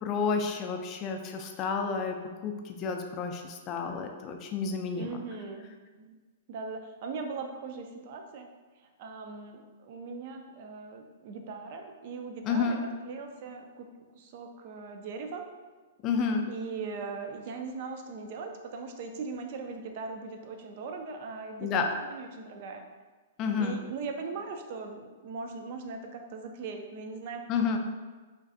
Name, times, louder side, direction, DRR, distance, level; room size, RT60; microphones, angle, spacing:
voice 1, 0.0-5.2 12.4-12.8 16.0-16.5 21.6-21.8 23.4-23.8 27.5-27.8, left 5 dB, 35° left, 4 dB, 0.3 m, -30 dB
voice 2, 5.0-5.7 5.9-6.2 6.5-8.5 8.8-13.9 14.1-15.4 16.5-22.8 23.6-27.8, right 4 dB, 55° right, 4 dB, 0.3 m, -39 dB
2.5 x 2.2 x 2.5 m, 1.3 s
hypercardioid pair, 120°, 0 cm